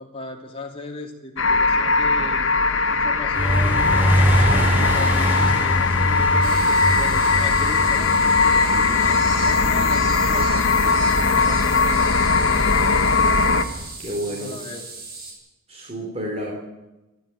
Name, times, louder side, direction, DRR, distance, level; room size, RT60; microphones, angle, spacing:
voice 1, 0.0-2.6 2.9-3.9 4.3-11.7 14.3-14.9, left 2 dB, 25° left, 2 dB, 2.8 m, -37 dB
sound 1, 1.4-13.6, left 4 dB, 65° left, 1.3 m, -19 dB
sound 2, 3.3-13.8, equal, 10° right, 4.5 m, -25 dB
sound 3, 6.4-15.3, right 3 dB, 45° right, 6.7 m, -36 dB
voice 2, 14.0-14.6 15.7-16.5, equal, 30° right, 0 dB, 3.7 m, -30 dB
28.5 x 11.0 x 9.2 m, 1.0 s
head